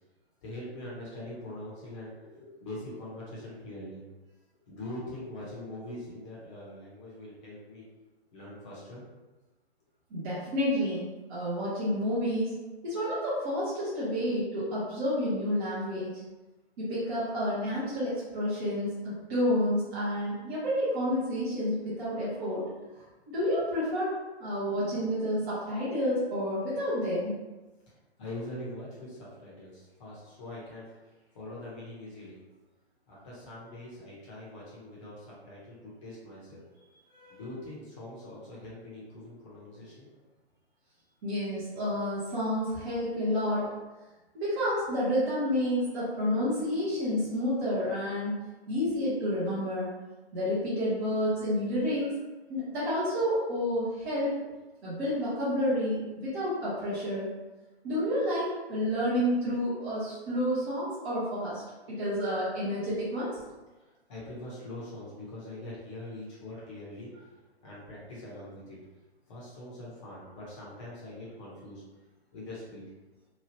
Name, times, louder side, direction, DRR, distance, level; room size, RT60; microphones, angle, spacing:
voice 1, 0.4-4.0 4.7-7.8 8.3-9.0 28.2-30.9 31.3-32.4 33.1-36.6 37.3-40.1 64.1-67.1 67.6-68.8 69.3-71.8 72.3-72.8, left 1 dB, 30° left, -7 dB, 1.0 m, -43 dB
voice 2, 10.1-12.6 12.8-16.1 16.8-22.6 23.3-24.1 24.4-27.3 37.1-37.4 41.2-43.7 44.3-48.4 48.7-49.9 50.3-52.2 52.5-54.3 54.8-57.3 57.8-61.6 61.9-63.3, equal, 20° right, -11 dB, 0.7 m, -29 dB
3.0 x 2.3 x 2.8 m, 1.1 s
hypercardioid pair, 140°, 33 cm